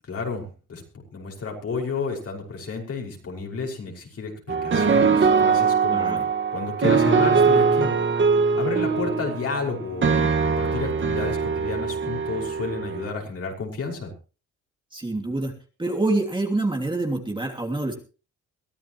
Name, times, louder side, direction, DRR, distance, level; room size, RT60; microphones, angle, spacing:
voice 1, 0.1-0.8 1.1-7.9 8.5-14.1, left 4 dB, 50° left, 0 dB, 5.7 m, -31 dB
sound 1, 4.5-13.1, right 5 dB, 40° right, 1.8 m, -22 dB
voice 2, 5.9-6.2 14.9-15.5 15.8-17.9, right 2 dB, 15° right, 1 dB, 2.9 m, -26 dB
23.0 x 14.0 x 3.1 m, 0.35 s
cardioid pair, 90°, 30 cm